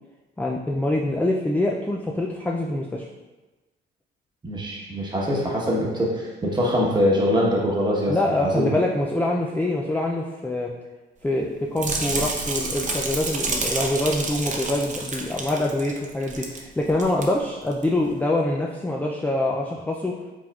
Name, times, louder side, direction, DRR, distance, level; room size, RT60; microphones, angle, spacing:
voice 1, 0.4-3.1 8.1-10.7 11.2-20.2, left 1 dB, 10° left, -1 dB, 0.3 m, -25 dB
voice 2, 4.4-8.2 8.4-8.7, equal, 20° right, -3 dB, 1.1 m, -23 dB
sound 1, 11.8-16.6 16.9-17.2 17.7-17.8, right 3 dB, 40° right, 0.7 m, -29 dB
4.8 x 3.5 x 2.3 m, 1.2 s
cardioid pair, 90°, 20 cm